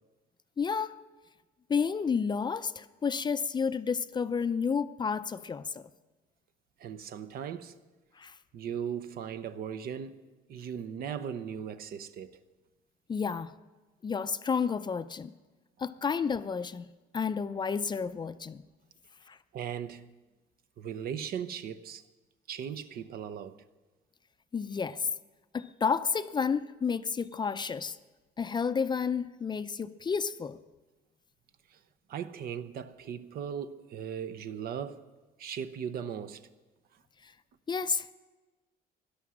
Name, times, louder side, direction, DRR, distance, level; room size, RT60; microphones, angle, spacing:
voice 1, 0.6-1.0 1.7-5.9 8.2-8.4 13.1-13.5 14.0-15.3 15.8-16.9 17.1-18.6 19.3-19.4 24.5-25.1 25.5-28.0 28.4-30.6 37.2-37.3 37.7-38.1, left 6 dB, 25° left, 0.5 m, -31 dB
voice 2, 6.8-7.8 8.5-10.2 10.5-12.4 19.5-20.1 20.8-22.0 22.5-23.6 31.7-31.8 32.1-35.1 35.4-36.4, right 8 dB, 65° right, 0.8 m, -38 dB
17.0 x 11.5 x 6.3 m
cardioid pair, 110°, 17 cm